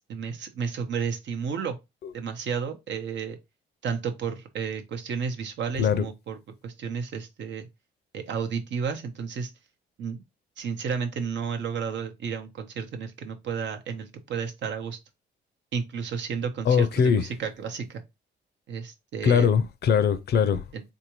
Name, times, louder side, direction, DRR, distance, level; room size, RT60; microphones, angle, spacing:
voice 1, 0.1-1.8 2.1-3.4 3.8-6.4 6.6-7.7 8.1-9.5 10.0-10.2 10.6-15.0 15.7-18.0 18.7-19.6 20.7-20.8, right 6 dB, 65° right, 0.8 m, -32 dB
voice 2, 16.7-17.2 19.2-20.6, left 7 dB, 55° left, 0.5 m, -21 dB
3.6 x 2.7 x 3.0 m
cardioid pair, 90°, 20 cm